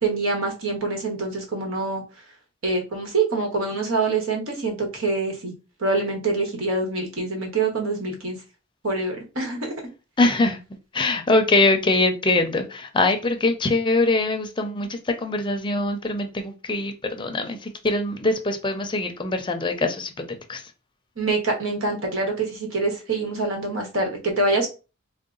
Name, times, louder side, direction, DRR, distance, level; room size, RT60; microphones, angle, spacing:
voice 1, 0.0-2.0 2.6-5.5 5.8-8.4 8.8-9.7 21.2-24.7, right 3 dB, 85° right, 1.3 m, -25 dB
voice 2, 10.2-10.6 10.9-20.1 20.5-20.6, left 2 dB, 25° left, 0.5 m, -23 dB
3.7 x 2.2 x 3.8 m
head